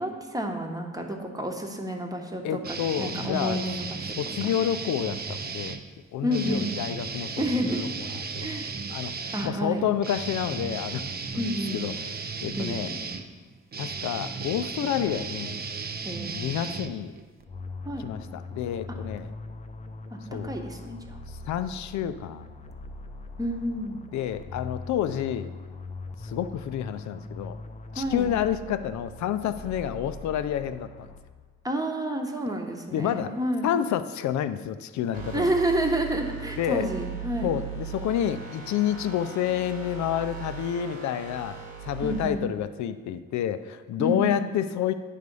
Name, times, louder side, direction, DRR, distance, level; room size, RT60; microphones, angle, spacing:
voice 1, 0.0-4.1 6.2-6.7 7.4-7.9 8.4-8.7 9.3-9.8 11.3-11.8 12.6-13.0 16.0-16.4 17.8-18.1 20.4-21.2 23.4-24.0 27.9-28.3 31.6-33.7 35.3-37.6 42.0-42.4 44.0-44.5, right 1 dB, 10° right, 2 dB, 1.0 m, -29 dB
voice 2, 2.4-3.6 4.2-5.8 6.1-8.6 8.9-11.0 11.3-11.5 11.7-12.9 13.8-15.6 16.3-17.1 18.0-19.3 20.3-20.5 21.3-22.5 24.1-25.5 26.2-27.6 27.9-31.1 32.9-33.4 33.6-35.5 36.6-36.9 37.4-41.6 41.8-44.9, left 10 dB, 70° left, 12 dB, 0.5 m, -29 dB
sound 1, 2.6-5.8 6.3-17.4, right 5 dB, 30° right, 0.6 m, -35 dB
sound 2, 17.5-31.6, left 2 dB, 25° left, 0.6 m, -41 dB
sound 3, 35.1-42.3, right 8 dB, 65° right, 1.2 m, -38 dB
9.3 x 3.4 x 5.3 m, 1.4 s
cardioid pair, 90°, 30 cm